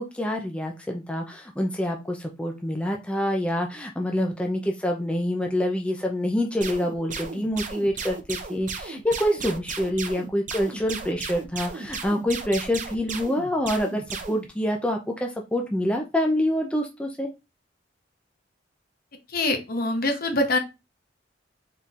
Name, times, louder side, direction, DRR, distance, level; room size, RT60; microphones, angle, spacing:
voice 1, 0.0-17.3, equal, 5° left, 1 dB, 0.5 m, -26 dB
sound 1, 6.6-14.5, right 5 dB, 45° right, 0.6 m, -35 dB
voice 2, 19.3-20.6, left 2 dB, 50° left, 5 dB, 0.9 m, -24 dB
4.1 x 3.7 x 2.4 m, 0.25 s
head